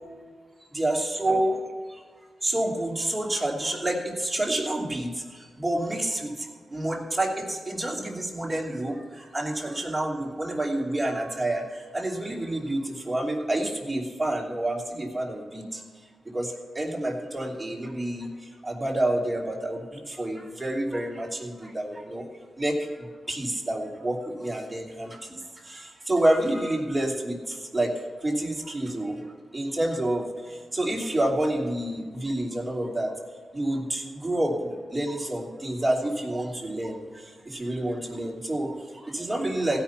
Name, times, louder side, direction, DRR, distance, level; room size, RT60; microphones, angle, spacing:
voice 1, 0.7-1.6 1.9-2.0 2.4-15.8 16.3-22.3 22.6-27.9 28.2-29.2 29.5-33.1 33.5-39.8, right 1 dB, 15° right, -2 dB, 2.9 m, -29 dB
16.5 x 5.9 x 5.8 m, 1.6 s
cardioid pair, 95°, 0 cm